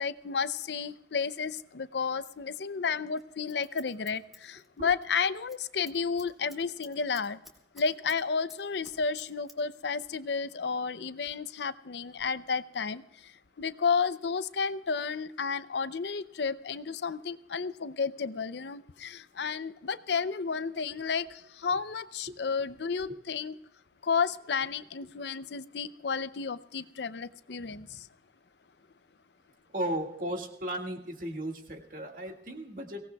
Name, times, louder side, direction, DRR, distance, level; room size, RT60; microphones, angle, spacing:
voice 1, 0.0-7.4 7.7-13.0 13.6-23.5 24.0-27.9, left 5 dB, 75° left, 14 dB, 0.6 m, -32 dB
Scissors, 3.2-5.1 5.4-5.6 5.9-8.2 8.5-9.6 9.8-9.9, left 1 dB, ahead, 1.8 m, -53 dB
voice 2, 27.7-28.0 29.7-33.0, right 1 dB, 50° right, 2 dB, 2.0 m, -36 dB
23.5 x 18.0 x 2.3 m, 0.84 s
head